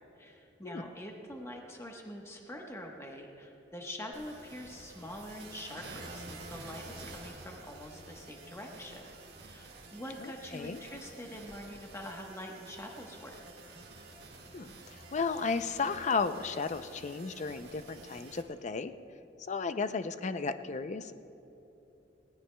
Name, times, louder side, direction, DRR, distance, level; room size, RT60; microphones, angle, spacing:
voice 1, 0.2-9.1 9.4-13.4, left 1 dB, 15° left, 1 dB, 1.1 m, -45 dB
sound 1, 4.1-18.4, right 2 dB, 60° right, 1.9 m, -50 dB
voice 2, 10.2-10.8 14.5-18.9 19.5-21.1, left 4 dB, 40° left, 11 dB, 0.5 m, -34 dB
19.5 x 17.5 x 2.3 m, 3.0 s
head